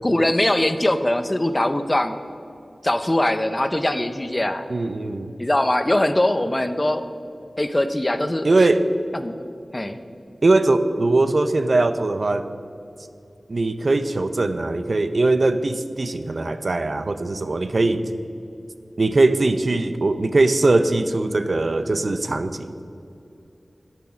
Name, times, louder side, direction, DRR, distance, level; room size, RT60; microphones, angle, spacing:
voice 1, 0.0-2.1 2.8-4.6 5.4-7.0 7.6-8.5 9.2-9.3 9.7-10.0, left 1 dB, 25° left, 9 dB, 0.6 m, -21 dB
voice 2, 4.7-5.3 8.4-8.9 10.4-12.5 13.5-18.1 19.0-22.7, right 2 dB, 60° right, 11 dB, 0.6 m, -20 dB
10.5 x 8.4 x 6.2 m, 2.6 s
wide cardioid pair, 75°, 0 cm